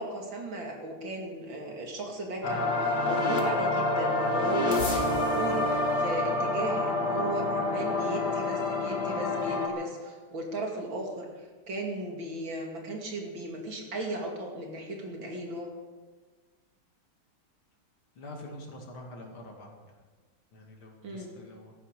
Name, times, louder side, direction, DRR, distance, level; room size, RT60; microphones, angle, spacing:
voice 1, 0.0-15.7 21.0-21.4, right 2 dB, 65° right, 0 dB, 3.3 m, -36 dB
sound 1, 2.4-9.7, left 2 dB, 50° left, 2.5 m, -27 dB
voice 2, 18.2-19.9 20.5-21.7, left 1 dB, 80° left, 1 dB, 3.3 m, -45 dB
17.0 x 13.5 x 5.1 m, 1.4 s
omnidirectional pair, 2.3 m